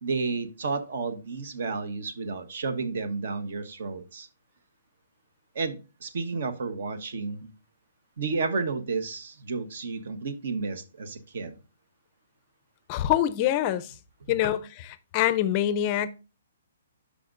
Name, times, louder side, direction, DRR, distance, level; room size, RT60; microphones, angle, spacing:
voice 1, 0.0-4.3 5.5-7.5 8.2-11.6, right 4 dB, 60° right, 1.2 m, -31 dB
voice 2, 12.9-13.9 14.3-16.1, left 12 dB, 25° left, 0.5 m, -25 dB
11.5 x 5.0 x 2.5 m
hypercardioid pair, 160°, 0 cm